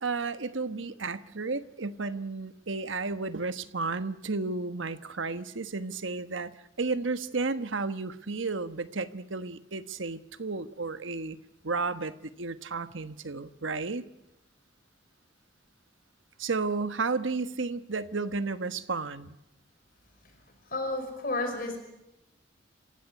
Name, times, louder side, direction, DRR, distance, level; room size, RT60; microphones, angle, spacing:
voice 1, 0.0-11.4 11.6-14.0 16.4-19.4, right 3 dB, 75° right, 12 dB, 1.2 m, -32 dB
voice 2, 20.7-21.8, left 2 dB, 45° left, 5 dB, 5.5 m, -31 dB
28.5 x 16.0 x 9.7 m, 0.88 s
head